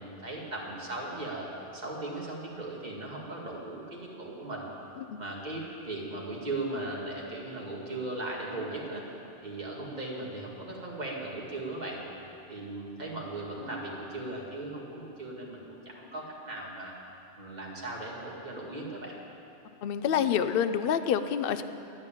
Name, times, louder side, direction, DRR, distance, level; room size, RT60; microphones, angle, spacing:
voice 1, 0.0-1.5 1.7-4.6 5.2-9.0 9.4-12.0 12.5-16.9 17.4-19.1, right 2 dB, 40° right, -4 dB, 2.2 m, -38 dB
voice 2, 19.8-21.6, left 8 dB, 60° left, 11 dB, 0.7 m, -27 dB
11.0 x 9.8 x 8.8 m, 2.8 s
omnidirectional pair, 1.1 m